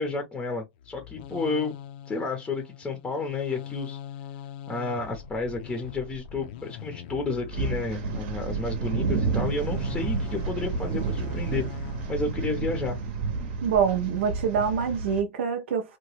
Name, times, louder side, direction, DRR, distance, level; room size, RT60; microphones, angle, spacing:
voice 1, 0.0-1.8 2.1-4.0 4.7-11.7 12.1-13.0, left 3 dB, 10° left, 0.6 m, -31 dB
sound 1, 0.8-13.9, left 8 dB, 55° left, 0.5 m, -42 dB
sound 2, 7.5-15.2, right 4 dB, 55° right, 0.8 m, -30 dB
voice 2, 13.6-16.0, right 7 dB, 85° right, 0.6 m, -25 dB
2.9 x 2.2 x 3.0 m
supercardioid pair, 145°, 6 cm